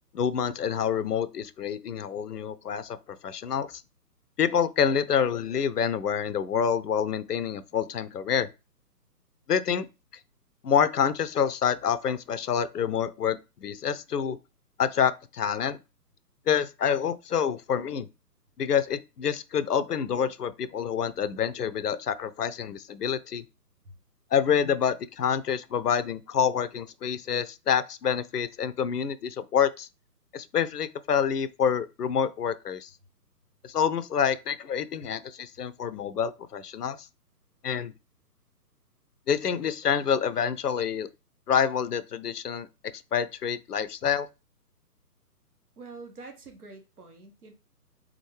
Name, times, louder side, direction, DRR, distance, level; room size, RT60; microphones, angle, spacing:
voice 1, 0.1-3.8 4.4-8.5 9.5-9.9 10.6-14.4 14.8-15.8 16.5-18.1 18.6-23.4 24.3-29.9 30.3-32.9 33.6-37.0 37.6-37.9 39.3-41.1 41.5-42.7 43.1-44.3, left 8 dB, 70° left, 0.6 m, -27 dB
voice 2, 45.8-47.5, right 3 dB, 65° right, 1.5 m, -46 dB
3.6 x 3.6 x 3.2 m
figure-of-eight pair, 135°, 48 cm